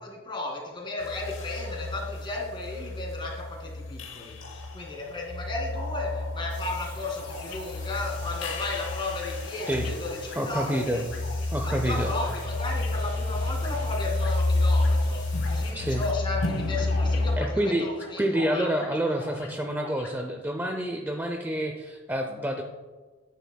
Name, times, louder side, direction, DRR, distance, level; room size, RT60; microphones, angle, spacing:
voice 1, 0.0-11.0 11.6-18.2 18.5-19.2, left 2 dB, 25° left, -1 dB, 2.1 m, -34 dB
sound 1, 1.0-17.4, left 2 dB, 65° left, 1.0 m, -30 dB
sound 2, 6.5-16.1, left 4 dB, 40° left, 2.8 m, -47 dB
sound 3, 6.9-20.1, left 3 dB, 85° left, 2.4 m, -44 dB
voice 2, 10.4-11.0 11.5-12.1 15.7-16.0 17.4-17.9 18.2-22.6, right 1 dB, 10° right, 3 dB, 0.5 m, -28 dB
10.5 x 9.4 x 2.3 m, 1.3 s
head